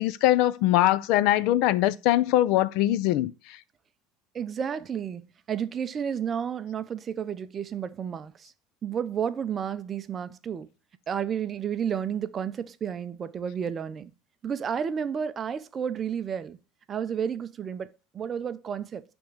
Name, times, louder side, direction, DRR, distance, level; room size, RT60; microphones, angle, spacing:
voice 1, 0.0-3.6, left 14 dB, 50° left, 0.4 m, -22 dB
voice 2, 4.3-5.2 5.5-8.5 8.8-10.7 11.1-14.1 14.4-16.6 16.9-17.9 18.1-19.0, right 8 dB, 20° right, 0.5 m, -31 dB
9.2 x 3.5 x 6.5 m
cardioid pair, 180°, 0 cm